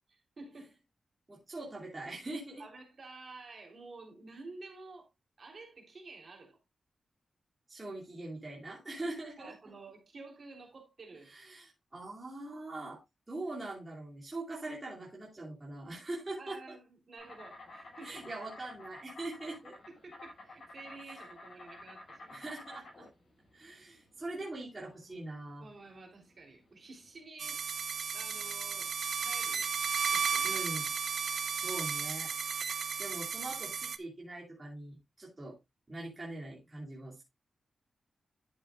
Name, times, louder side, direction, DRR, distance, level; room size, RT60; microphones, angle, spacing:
voice 1, 0.1-0.8 2.6-5.1 5.4-6.6 9.4-11.3 16.4-18.3 20.0-22.4 25.6-27.6 28.1-28.9 29.2-29.7 30.1-30.7, right 3 dB, 45° right, 3.6 m, -51 dB
voice 2, 1.3-2.6 7.7-9.5 11.3-13.0 13.3-16.6 18.0-19.7 22.3-23.1 23.5-25.7 30.4-30.9 31.5-32.3 33.0-35.6 35.9-37.2, right 2 dB, 25° right, 2.7 m, -42 dB
Insect, 17.2-27.2, left 2 dB, 60° left, 6.5 m, -51 dB
sound 1, 27.4-34.0, right 6 dB, 60° right, 0.8 m, -34 dB
11.0 x 7.4 x 2.4 m
wide cardioid pair, 140°, 0 cm